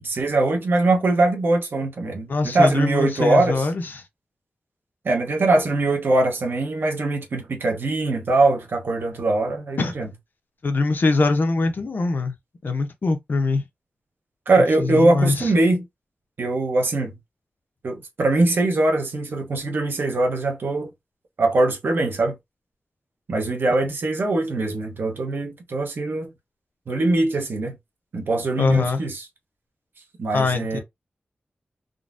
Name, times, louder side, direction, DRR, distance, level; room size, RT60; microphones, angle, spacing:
voice 1, 0.0-3.7 5.0-10.1 14.5-15.9 16.4-17.2 17.8-20.9 21.4-22.4 23.3-26.3 26.9-27.7 28.1-29.2 30.2-30.8, right 2 dB, 75° right, 0.9 m, -22 dB
voice 2, 2.3-4.0 9.8-9.9 10.6-12.3 12.6-13.6 14.8-15.5 28.6-29.0 30.3-30.8, left 3 dB, 60° left, 0.7 m, -22 dB
3.7 x 2.1 x 2.5 m
wide cardioid pair, 110°, 4 cm